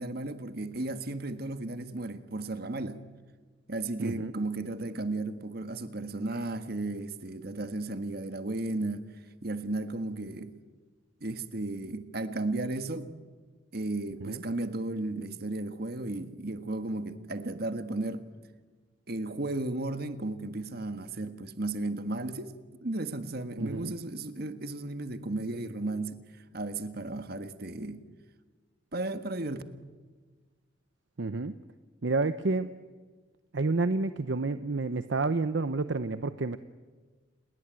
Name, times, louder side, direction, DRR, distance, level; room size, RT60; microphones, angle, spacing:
voice 1, 0.0-3.0 3.7-9.0 9.4-10.6 11.2-13.1 13.7-18.3 19.1-22.5 22.8-26.2 26.5-28.0 28.9-29.6, right 2 dB, 55° right, 1.6 m, -34 dB
voice 2, 4.0-4.3 14.2-14.4 23.6-23.9 31.2-31.6 32.0-32.7 33.5-36.6, right 3 dB, 70° right, 0.8 m, -29 dB
29.0 x 21.0 x 8.9 m
head